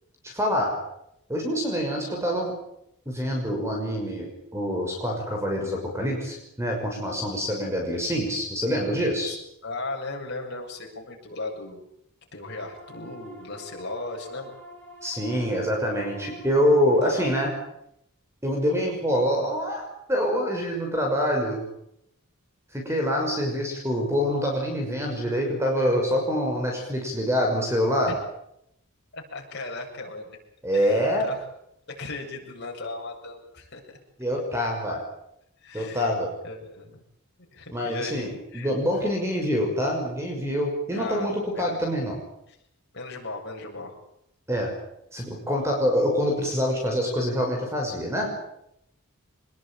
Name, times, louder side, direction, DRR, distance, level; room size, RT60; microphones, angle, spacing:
voice 1, 0.2-0.7 1.3-2.5 3.1-9.3 15.0-17.5 18.4-19.8 20.1-21.6 22.7-28.1 30.6-31.3 34.2-35.0 35.7-36.3 37.7-42.2 44.5-44.7 45.1-48.3, equal, 15° right, 1 dB, 6.0 m, -25 dB
voice 2, 9.3-11.8 12.3-14.5 17.0-17.2 28.1-28.2 29.1-30.4 30.7-31.4 31.9-33.8 35.6-36.1 36.4-37.0 37.5-38.3 38.5-38.7 40.9-41.3 41.5-41.8 42.9-43.9, left 3 dB, 50° left, 0 dB, 7.7 m, -37 dB
sound 1, 12.4-17.5, equal, 5° left, 6.8 m, -46 dB
25.0 x 21.0 x 9.2 m, 0.77 s
head